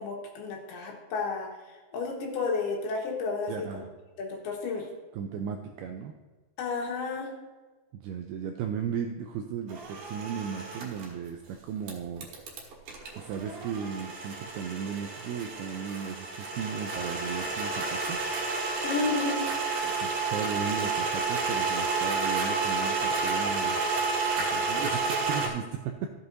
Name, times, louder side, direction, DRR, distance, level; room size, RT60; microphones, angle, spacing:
voice 1, 0.0-1.5 1.9-3.8 4.2-4.9 6.6-7.3 18.8-19.4 24.4-24.5, left 4 dB, 70° left, -1 dB, 3.1 m, -32 dB
voice 2, 3.5-3.9 5.1-6.2 8.0-12.3 13.2-18.3 19.8-26.1, right 7 dB, 90° right, 4 dB, 2.2 m, -36 dB
sound 1, 9.7-11.1 11.9-25.5, right 4 dB, 60° right, 2.8 m, -30 dB
14.0 x 8.3 x 2.7 m, 1.3 s
omnidirectional pair, 5.1 m